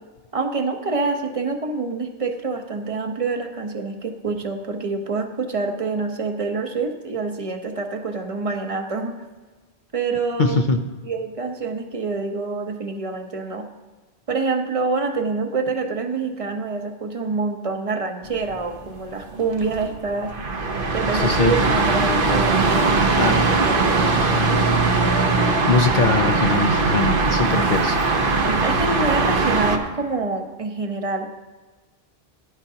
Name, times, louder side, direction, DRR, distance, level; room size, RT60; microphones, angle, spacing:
voice 1, 0.3-9.2 9.9-10.6 11.0-13.7 14.3-20.3 20.9-23.3 23.6-24.6 28.5-31.3, right 4 dB, 35° right, 4 dB, 1.1 m, -26 dB
voice 2, 10.4-10.8 21.1-21.5 23.2-23.4 25.7-28.0, left 4 dB, 50° left, 4 dB, 0.8 m, -21 dB
sound 1, 18.2-29.8, right 3 dB, 55° right, 1.1 m, -20 dB
18.5 x 10.5 x 2.9 m, 1.3 s
omnidirectional pair, 1.1 m